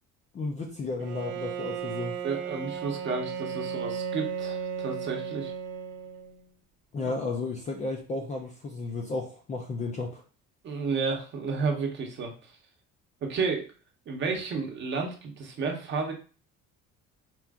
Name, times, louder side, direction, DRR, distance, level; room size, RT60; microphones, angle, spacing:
voice 1, 0.3-2.2 6.9-10.2, left 3 dB, 25° left, 1 dB, 0.4 m, -33 dB
Bowed string instrument, 1.0-6.4, right 7 dB, 80° right, 0.7 m, -35 dB
voice 2, 2.2-5.5 7.0-7.1 10.6-12.5 13.2-13.7 14.1-16.1, right 4 dB, 35° right, 2 dB, 0.8 m, -31 dB
4.4 x 2.4 x 3.5 m, 0.37 s
cardioid pair, 180°, 32 cm